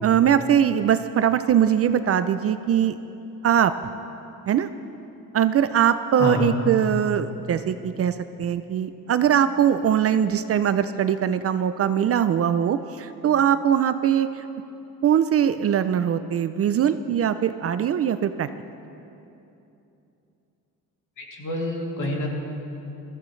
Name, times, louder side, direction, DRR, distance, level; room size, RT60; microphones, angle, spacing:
voice 1, 0.0-3.0 3.4-3.7 4.5-4.7 5.3-14.4 15.0-18.5, right 9 dB, 45° right, 11 dB, 0.4 m, -21 dB
voice 2, 21.2-22.3, left 1 dB, 60° left, -2 dB, 2.7 m, -27 dB
21.5 x 14.5 x 3.2 m, 2.9 s
cardioid pair, 155°, 35 cm